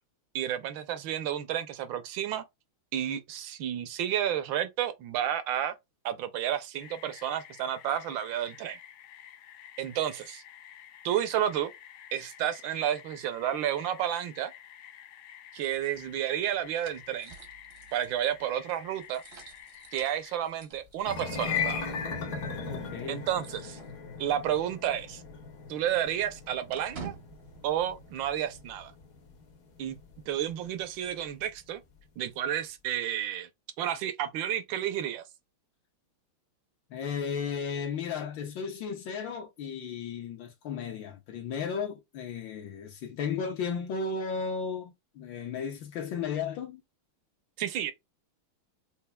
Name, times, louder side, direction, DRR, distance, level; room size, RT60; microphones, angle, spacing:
voice 1, 0.3-2.4 2.9-5.7 6.0-8.8 9.8-10.4 11.0-11.7 12.1-14.5 15.5-17.3 17.9-19.2 19.9-21.9 23.1-23.8 24.2-25.2 25.7-27.1 27.6-28.9 29.8-30.0 30.3-31.8 32.2-33.5 33.8-35.2 47.6-47.9, right 10 dB, 75° right, 1.3 m, -31 dB
sound 1, 6.8-20.4, left 10 dB, 90° left, 1.4 m, -50 dB
sound 2, 15.6-24.5 24.8-24.9 25.3-28.7, right 6 dB, 50° right, 0.7 m, -51 dB
sound 3, 21.0-31.3, left 6 dB, 55° left, 1.1 m, -38 dB
voice 2, 22.7-23.3 36.9-46.8, left 6 dB, 70° left, 1.4 m, -34 dB
5.5 x 2.3 x 2.2 m
omnidirectional pair, 2.2 m